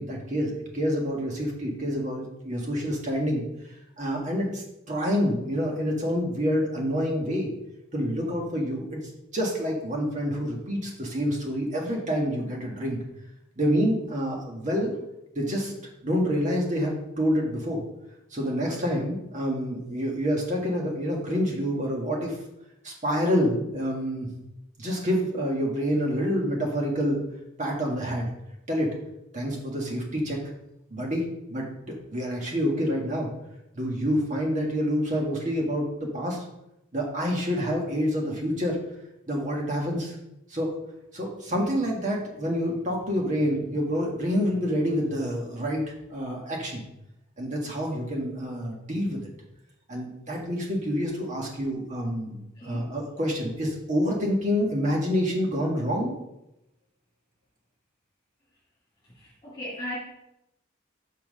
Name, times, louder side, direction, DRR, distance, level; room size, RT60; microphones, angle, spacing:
voice 1, 0.0-3.4 4.0-7.5 7.9-9.0 9.3-13.0 13.5-14.9 15.3-15.7 16.0-17.8 18.3-22.4 22.8-24.3 24.8-27.2 27.6-28.3 28.7-28.9 29.3-30.4 30.9-31.7 32.1-33.3 33.7-36.4 36.9-38.8 39.3-40.1 40.5-40.7 41.1-46.8 47.4-49.2 49.9-52.4 52.6-56.1, equal, 35° right, -1 dB, 1.7 m, -27 dB
voice 2, 52.6-53.0 59.2-59.9, left 1 dB, 25° left, -9 dB, 3.1 m, -37 dB
5.8 x 5.8 x 5.5 m, 0.86 s
head